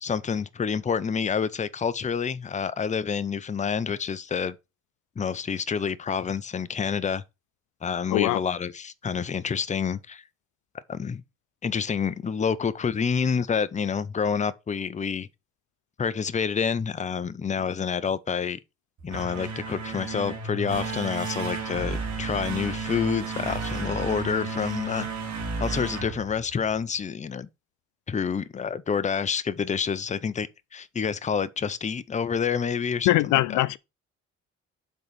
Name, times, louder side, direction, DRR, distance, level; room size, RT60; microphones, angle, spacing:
voice 1, 0.0-4.6 5.2-7.2 7.8-10.3 10.9-11.2 11.6-15.3 16.0-18.6 19.0-25.1 25.6-27.5 28.1-33.6, left 6 dB, 25° left, 0.6 m, -28 dB
sound 1, 19.0-27.0, right 4 dB, 65° right, 2.3 m, -33 dB
voice 2, 33.1-33.8, left 17 dB, 85° left, 0.5 m, -22 dB
5.3 x 4.0 x 6.0 m
cardioid pair, 90°, 30 cm